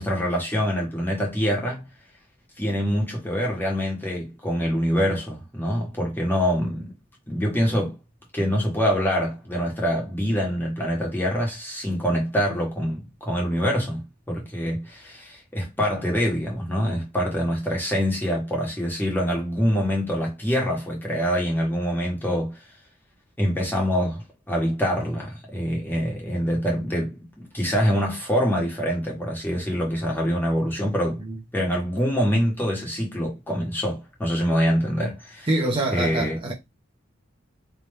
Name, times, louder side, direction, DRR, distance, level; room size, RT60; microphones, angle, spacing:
voice 1, 0.0-1.9 2.6-7.0 7.3-8.0 8.3-22.6 23.4-31.2 31.5-35.5 35.9-36.4, equal, 10° left, 1.5 m, -25 dB
voice 2, 35.5-36.5, right 2 dB, 25° right, 0.9 m, -25 dB
3.5 x 2.9 x 3.3 m
head